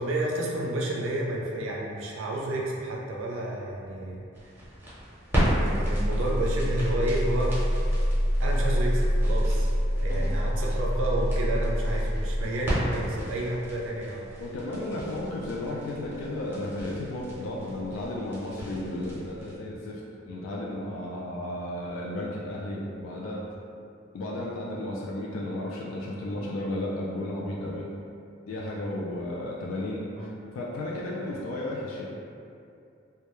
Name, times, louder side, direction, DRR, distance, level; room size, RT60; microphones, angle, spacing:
voice 1, 0.0-4.2 5.6-7.5 8.4-14.3 30.2-30.3, right 1 dB, 80° right, -2 dB, 0.4 m, -30 dB
sound 1, 4.3-19.5, equal, 10° right, 0.6 m, -27 dB
voice 2, 14.4-20.0 20.3-23.4 24.1-27.9 28.5-32.1, left 1 dB, 80° left, -3 dB, 0.3 m, -33 dB
2.2 x 2.0 x 2.9 m, 2.5 s
head